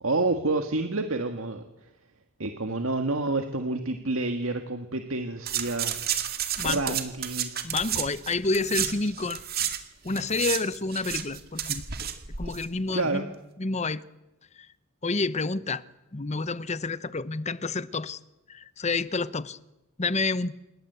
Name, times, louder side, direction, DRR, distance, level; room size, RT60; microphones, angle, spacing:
voice 1, 0.0-1.6 2.4-6.0 6.6-7.5 12.9-13.3, right 2 dB, 80° right, 1.8 m, -28 dB
sound 1, 5.5-9.8 10.1-12.6 12.9-13.0, right 9 dB, 45° right, 2.3 m, -31 dB
voice 2, 6.6-7.0 7.6-9.4 10.0-11.8 12.4-13.3 13.6-14.0 14.6-14.7 15.0-15.8 16.1-18.2 18.5-19.6 20.0-20.5, left 3 dB, 35° left, 0.9 m, -29 dB
27.5 x 22.5 x 8.1 m
head